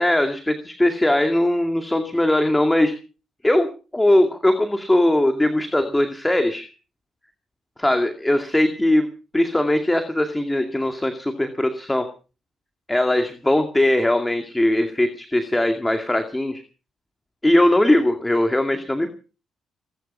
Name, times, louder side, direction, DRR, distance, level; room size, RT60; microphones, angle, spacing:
voice 1, 0.0-2.9 3.4-6.7 7.8-9.1 9.3-12.1 12.9-16.6 17.4-19.1, left 1 dB, 10° left, 6 dB, 2.2 m, -20 dB
22.0 x 12.0 x 5.5 m, 0.36 s
cardioid pair, 90°, 0 cm